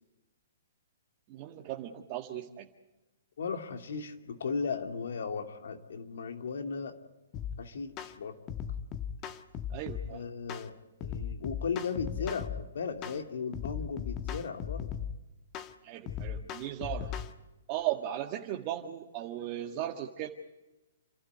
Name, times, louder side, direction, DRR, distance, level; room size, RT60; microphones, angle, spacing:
voice 1, 1.3-2.7 9.7-10.2 15.8-17.1 17.7-20.3, right 12 dB, 40° right, 2 dB, 1.9 m, -37 dB
voice 2, 3.4-7.0 7.6-8.4 10.1-10.7 11.0-14.9, left 5 dB, 70° left, 6 dB, 2.7 m, -36 dB
sound 1, 7.3-7.6 8.0-8.1 8.5-10.1 10.5-10.7 11.0-12.6 13.0-13.2 13.5-15.1 15.5-15.7 16.1-17.3, left 8 dB, 30° left, 1.5 m, -37 dB
29.5 x 12.5 x 9.6 m, 1.0 s
hypercardioid pair, 130°, 0 cm